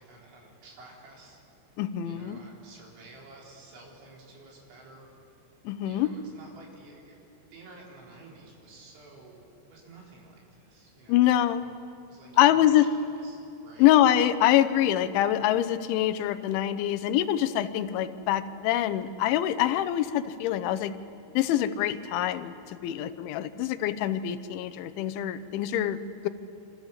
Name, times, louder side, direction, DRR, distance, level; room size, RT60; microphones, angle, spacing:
voice 1, 0.0-1.4 2.0-5.1 5.9-7.2 7.5-9.4 9.7-11.3 11.6-11.7 12.1-12.9 13.2-13.9, right 3 dB, 75° right, -2 dB, 6.7 m, -51 dB
voice 2, 1.8-2.4 5.6-6.1 11.1-11.6 12.4-12.9 13.8-20.9 21.3-26.0, left 12 dB, 80° left, 12 dB, 3.3 m, -24 dB
27.5 x 25.5 x 7.4 m, 2.7 s
omnidirectional pair, 5.4 m